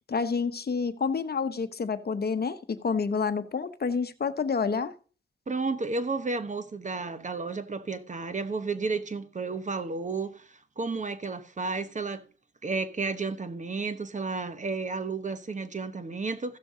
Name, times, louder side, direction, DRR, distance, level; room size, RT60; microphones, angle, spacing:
voice 1, 0.1-4.9, left 5 dB, 50° left, 0.9 m, -28 dB
voice 2, 5.5-12.2 12.6-16.6, right 4 dB, 40° right, 1.0 m, -32 dB
15.0 x 6.8 x 3.7 m
cardioid pair, 70°, 20 cm